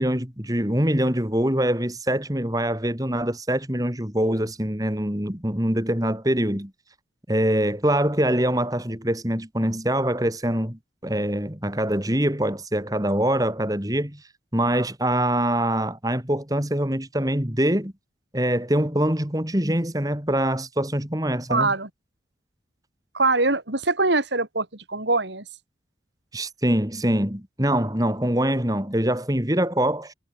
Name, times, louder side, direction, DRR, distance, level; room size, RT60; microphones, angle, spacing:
voice 1, 0.0-6.7 7.3-14.2 14.5-17.9 18.3-21.7 26.3-30.1, right 1 dB, 20° right, 2.9 m, -24 dB
voice 2, 21.5-21.9 23.1-25.4, right 3 dB, 75° right, 3.8 m, -23 dB
head